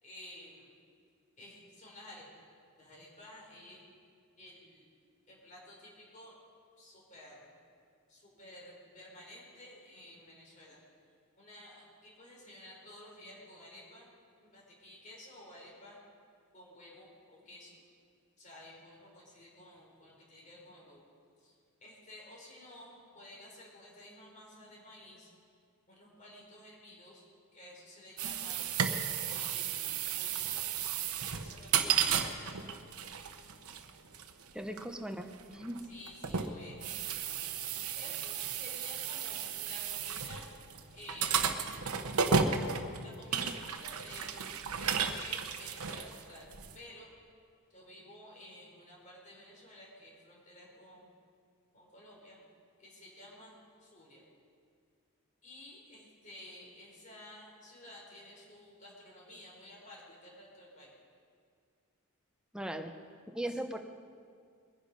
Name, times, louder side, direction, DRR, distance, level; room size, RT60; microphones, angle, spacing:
voice 1, 0.0-0.7 1.4-2.3 2.8-3.9 4.4-4.9 5.3-6.4 6.8-7.5 8.1-10.8 11.4-14.1 14.4-16.0 16.5-17.8 18.4-21.0 21.4-21.5 21.8-25.3 25.9-27.2 27.5-30.7 31.0-32.4 35.8-37.4 37.9-40.5 40.9-41.8 43.0-47.1 47.7-51.1 51.7-52.4 52.8-54.2 55.4-60.9, left 1 dB, 35° left, -3 dB, 4.1 m, -53 dB
sound 1, 28.2-46.8, right 6 dB, 90° right, 1.0 m, -34 dB
voice 2, 34.5-35.8 62.5-62.9 63.3-63.8, right 1 dB, 5° right, 5 dB, 0.9 m, -38 dB
22.0 x 10.0 x 5.4 m, 2.2 s
head